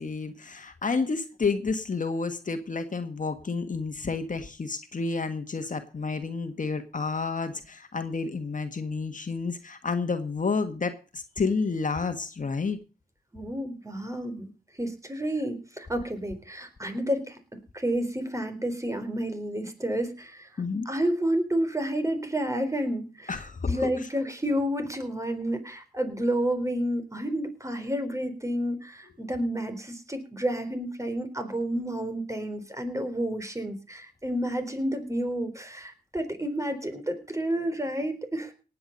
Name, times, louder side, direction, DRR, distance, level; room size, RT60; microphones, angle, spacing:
voice 1, 0.0-12.8 20.6-20.9 23.3-24.1, left 4 dB, 50° left, 8 dB, 1.6 m, -30 dB
voice 2, 13.3-14.5 14.8-17.4 17.7-20.5 20.9-38.5, right 1 dB, 20° right, 7 dB, 4.0 m, -30 dB
18.5 x 8.6 x 5.3 m, 0.35 s
cardioid pair, 50°, 16 cm